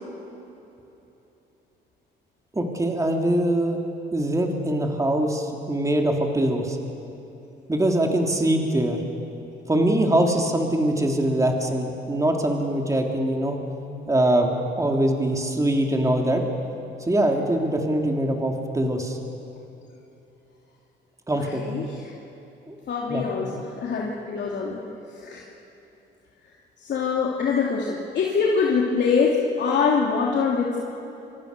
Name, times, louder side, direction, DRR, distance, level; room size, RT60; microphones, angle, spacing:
voice 1, 2.5-3.8 4.1-6.8 7.7-9.0 9.7-13.6 14.1-16.4 17.0-19.2 21.3-21.7 22.7-22.8 23.1-23.2, right 1 dB, 15° right, 1 dB, 3.4 m, -23 dB
voice 2, 21.5-22.1 22.9-24.8 25.1-25.4 26.8-30.8, left 5 dB, 60° left, -3 dB, 2.9 m, -24 dB
27.0 x 25.0 x 6.9 m, 2.9 s
cardioid pair, 90°, 20 cm